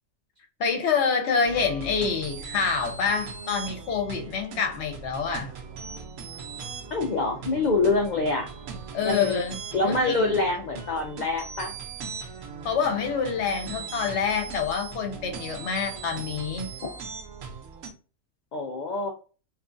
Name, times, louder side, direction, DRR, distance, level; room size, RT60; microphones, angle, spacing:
voice 1, 0.6-5.5 8.9-10.4 12.6-16.8, left 5 dB, 65° left, 0.9 m, -27 dB
sound 1, 1.4-17.9, right 5 dB, 75° right, 1.0 m, -39 dB
voice 2, 6.9-8.5 9.0-9.4 9.7-11.7 18.5-19.1, left 3 dB, 90° left, 0.4 m, -25 dB
3.0 x 2.4 x 2.5 m
omnidirectional pair, 1.4 m